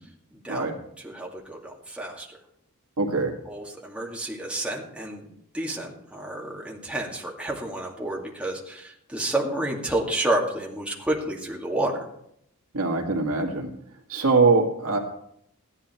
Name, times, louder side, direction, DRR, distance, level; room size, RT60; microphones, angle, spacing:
voice 1, 0.3-0.7 1.0-2.3 3.5-5.3 5.5-12.1, right 1 dB, 5° right, -2 dB, 2.2 m, -30 dB
voice 2, 3.0-3.3 12.7-13.7 14.1-15.0, right 3 dB, 75° right, 3 dB, 2.0 m, -22 dB
14.5 x 11.0 x 4.5 m, 0.72 s
head